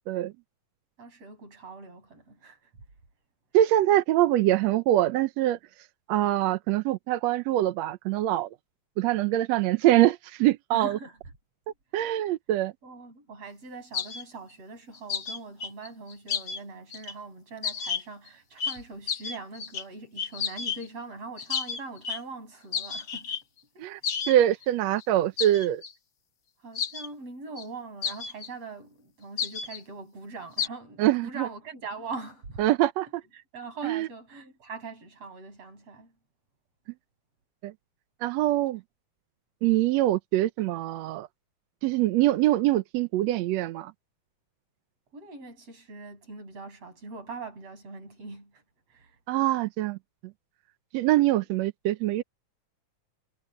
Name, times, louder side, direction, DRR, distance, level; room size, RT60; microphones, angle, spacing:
voice 1, 1.0-2.7 10.7-11.2 12.8-23.3 23.7-24.1 26.6-32.6 33.3-36.1 45.1-48.6 48.9-49.2, right 3 dB, 50° right, 7.9 m, -42 dB
voice 2, 3.5-5.6 6.1-8.5 9.0-11.0 11.9-12.7 23.8-24.0 24.3-25.8 31.0-31.5 32.6-33.1 33.8-34.1 37.6-37.7 38.2-38.8 39.6-41.3 41.8-43.9 49.3-50.0 50.9-52.2, right 14 dB, 70° right, 1.7 m, -24 dB
sound 1, 13.9-14.2 14.9-16.6 16.9-17.1 17.6-18.3 18.6-18.8 19.1-19.8 20.2-20.9 21.4-22.2 22.7-23.4 24.0-24.4 24.6-24.7 25.0-25.1 25.4-25.9 26.7-27.1 27.6-27.7 28.0-28.5 29.4-29.8 30.6-30.7, left 6 dB, 60° left, 0.9 m, -32 dB
omnidirectional pair, 3.6 m